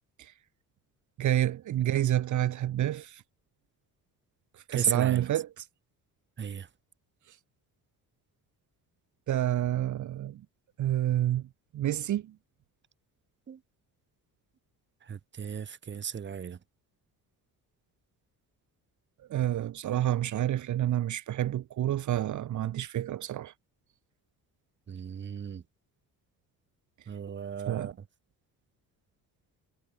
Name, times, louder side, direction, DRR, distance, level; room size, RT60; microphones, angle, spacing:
voice 1, 1.2-3.2 4.7-5.7 7.3-7.4 9.3-10.4 10.8-12.3 19.3-23.5 27.7-27.9, right 12 dB, 50° right, 2.1 m, -29 dB
voice 2, 4.7-5.3 6.4-6.7 13.5-13.6 15.0-16.6 24.9-25.6 27.1-27.9, right 7 dB, 30° right, 2.8 m, -35 dB
cardioid pair, 170°, 37 cm